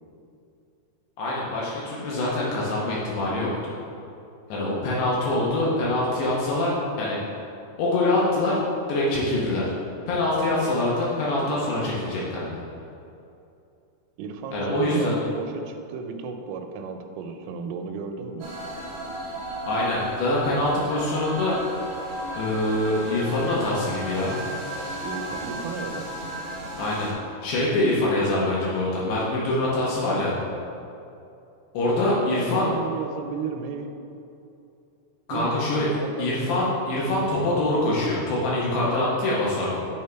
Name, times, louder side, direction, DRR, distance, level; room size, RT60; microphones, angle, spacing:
voice 1, 1.2-3.7 4.5-7.3 7.8-8.6 8.9-9.7 10.1-12.6 14.5-15.2 19.7-21.8 22.3-24.4 26.8-30.3 31.7-32.7 35.3-35.9 36.2-39.9, left 2 dB, 75° left, -6 dB, 2.7 m, -24 dB
voice 2, 14.2-18.5 25.0-26.1 32.0-33.9 35.3-36.6, right 5 dB, 90° right, 6 dB, 3.1 m, -34 dB
sound 1, 18.4-27.1, right 1 dB, 65° right, 1.7 m, -34 dB
9.6 x 3.5 x 4.5 m, 2.6 s
omnidirectional pair, 5.5 m